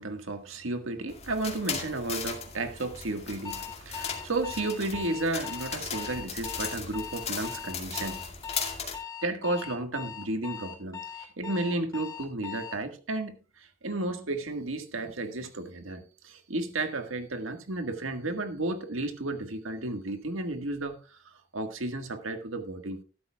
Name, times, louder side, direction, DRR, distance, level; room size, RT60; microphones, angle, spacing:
voice 1, 0.0-8.3 9.2-23.0, right 2 dB, 80° right, 1.7 m, -33 dB
sound 1, 1.1-9.0, left 6 dB, 35° left, 2.2 m, -37 dB
Alarm, 3.4-12.8, left 7 dB, 15° left, 2.1 m, -40 dB
13.5 x 12.0 x 2.3 m
head